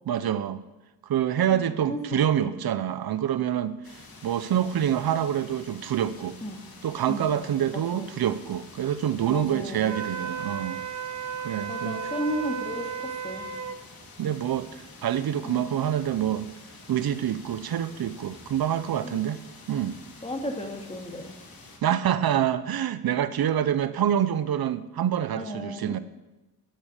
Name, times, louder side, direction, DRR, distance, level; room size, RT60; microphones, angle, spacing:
voice 1, 0.1-0.6 1.1-3.8 4.2-6.4 6.8-10.8 11.4-12.0 14.2-16.5 16.9-20.0 21.8-26.0, right 10 dB, 80° right, 13 dB, 0.7 m, -26 dB
voice 2, 1.5-2.6 6.4-6.6 7.1-7.4 7.7-8.1 9.3-10.0 11.7-13.5 15.4-15.7 19.0-19.2 20.2-21.3 25.3-25.9, equal, 15° left, 2 dB, 2.6 m, -34 dB
sound 1, 3.8-21.8, left 2 dB, 70° left, 2.6 m, -48 dB
Wind instrument woodwind instrument, 9.9-13.8, right 6 dB, 50° right, 1.0 m, -34 dB
11.5 x 10.0 x 6.6 m, 1.0 s
cardioid pair, 75°, 36 cm